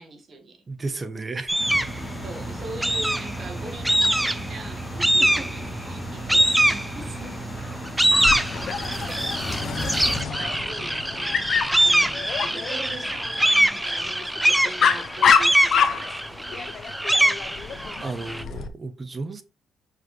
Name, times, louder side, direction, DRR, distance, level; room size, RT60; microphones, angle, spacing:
voice 1, 0.0-0.7 2.2-7.6 8.4-8.6 8.9-9.4 9.9-16.9, right 3 dB, 45° right, 1.9 m, -41 dB
voice 2, 0.7-1.6 5.4-5.5 8.8-9.1 18.0-19.4, right 3 dB, 30° right, 0.9 m, -33 dB
sound 1, 1.5-2.0 2.8-3.4 3.8-4.5 5.0-5.7 6.3-7.2 7.7-18.4, right 1 dB, 5° right, 0.5 m, -23 dB
sound 2, 1.6-10.2, right 1 dB, 20° left, 3.7 m, -35 dB
Dog, 8.1-18.7, left 6 dB, 60° left, 0.8 m, -27 dB
5.9 x 5.1 x 3.2 m
cardioid pair, 90°, 0 cm